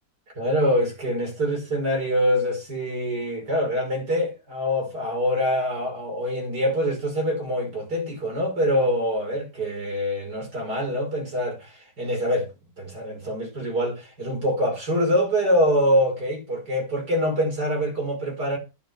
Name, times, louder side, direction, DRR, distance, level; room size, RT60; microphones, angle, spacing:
voice 1, 0.4-12.5 12.8-18.6, equal, 90° right, 5.9 m, -25 dB
10.0 x 5.5 x 7.9 m
omnidirectional pair, 1.7 m